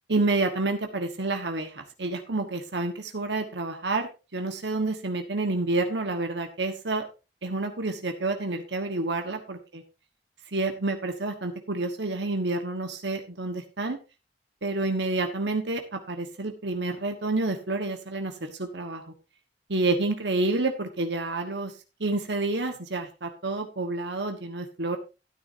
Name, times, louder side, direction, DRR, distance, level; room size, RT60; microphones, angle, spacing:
voice 1, 0.1-7.0 7.4-9.6 10.5-14.0 14.6-19.1 19.7-21.7 22.0-25.0, right 2 dB, 80° right, 5 dB, 1.4 m, -29 dB
12.5 x 9.7 x 2.7 m, 0.29 s
head